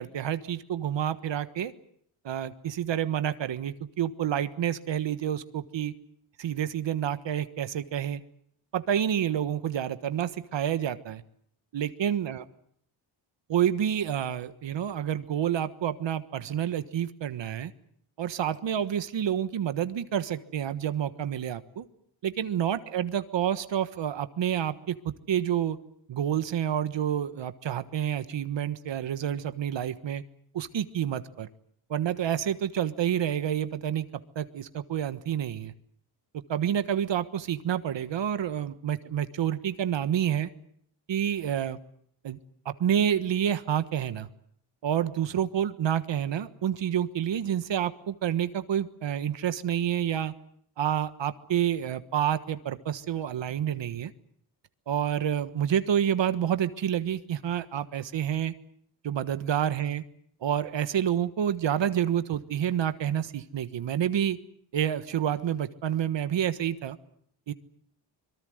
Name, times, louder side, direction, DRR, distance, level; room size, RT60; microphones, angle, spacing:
voice 1, 0.0-1.7 2.2-5.9 6.4-8.2 8.7-11.2 11.7-12.4 13.5-17.7 18.2-21.8 22.2-25.8 26.1-30.2 30.5-31.5 31.9-34.1 34.3-35.7 36.3-40.5 41.1-41.8 42.2-42.4 42.6-44.3 44.8-50.3 50.8-54.1 54.9-58.5 59.0-60.0 60.4-64.4 64.7-67.0 67.5-67.6, right 10 dB, 70° right, 11 dB, 1.5 m, -28 dB
25.5 x 23.0 x 7.9 m, 0.67 s
cardioid pair, 100°, 47 cm